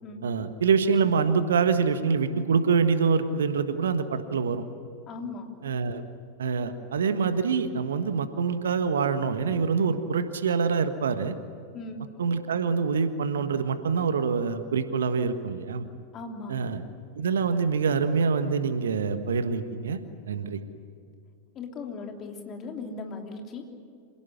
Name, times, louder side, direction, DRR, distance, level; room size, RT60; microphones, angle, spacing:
voice 1, 0.2-4.6 5.6-6.0 6.4-11.3 12.2-15.9 16.5-16.8 17.1-20.0 20.3-20.6, right 5 dB, 65° right, 10 dB, 1.5 m, -25 dB
voice 2, 5.1-5.5 11.7-12.0 16.1-16.6 21.5-23.6, left 3 dB, 30° left, 3 dB, 3.4 m, -38 dB
27.0 x 17.5 x 9.8 m, 2.4 s
figure-of-eight pair, 90°, 0 cm